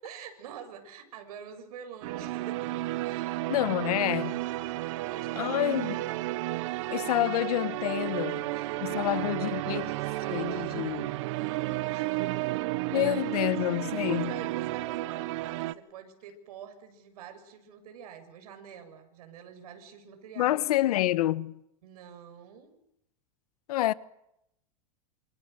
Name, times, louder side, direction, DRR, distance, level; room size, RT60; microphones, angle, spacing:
voice 1, 0.0-2.7 3.0-4.2 4.8-6.3 8.5-9.3 11.3-12.4 12.9-13.3 14.0-20.6 21.8-22.8, right 8 dB, 80° right, 6.7 m, -46 dB
sound 1, 2.0-15.7, right 18 dB, 55° right, 1.1 m, -32 dB
voice 2, 3.5-4.4 5.4-6.0 6.9-8.5 8.8-10.0 10.3-11.2 12.9-14.4 20.4-21.6 23.7-23.9, left 15 dB, 80° left, 1.2 m, -28 dB
28.5 x 27.5 x 6.7 m
supercardioid pair, 170°, 19 cm